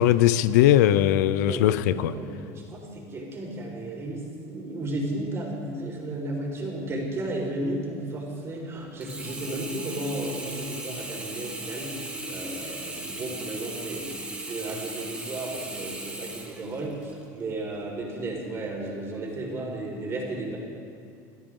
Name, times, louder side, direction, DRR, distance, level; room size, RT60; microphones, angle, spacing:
voice 1, 0.0-2.1, left 12 dB, 85° left, 15 dB, 0.6 m, -20 dB
voice 2, 1.5-12.0 12.3-14.1 14.5-20.6, right 1 dB, 30° right, -1 dB, 4.6 m, -34 dB
Sink (filling or washing), 9.0-17.2 17.8-17.9, right 2 dB, 10° right, 2.2 m, -37 dB
24.0 x 12.0 x 3.8 m, 2.4 s
supercardioid pair, 115°, 9 cm